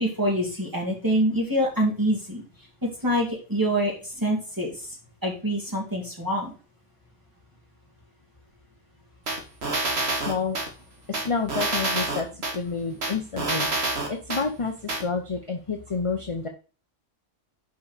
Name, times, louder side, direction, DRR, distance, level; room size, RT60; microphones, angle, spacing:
voice 1, 0.0-2.4 2.8-4.9 5.2-6.5, equal, 15° right, -1 dB, 2.7 m, -25 dB
sound 1, 9.3-10.7 11.1-12.6 13.0-14.4 14.9-15.0, right 2 dB, 60° right, 1.9 m, -27 dB
voice 2, 10.1-10.6 11.1-16.5, left 4 dB, 30° left, 4 dB, 0.8 m, -29 dB
5.7 x 5.3 x 6.6 m, 0.36 s
omnidirectional pair, 1.2 m